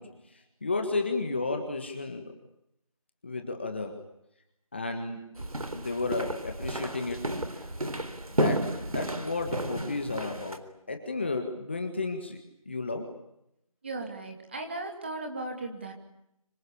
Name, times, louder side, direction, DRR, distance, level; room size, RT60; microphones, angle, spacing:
voice 1, 0.0-2.3 3.2-4.0 4.7-5.4 5.7-7.7 8.3-13.2, left 3 dB, 20° left, 5 dB, 1.6 m, -33 dB
sound 1, 5.4-10.6, right 1 dB, 90° right, 3.8 m, -32 dB
voice 2, 13.8-15.9, right 2 dB, 20° right, 4 dB, 2.6 m, -36 dB
26.5 x 25.0 x 8.6 m, 0.81 s
figure-of-eight pair, 175°, 18 cm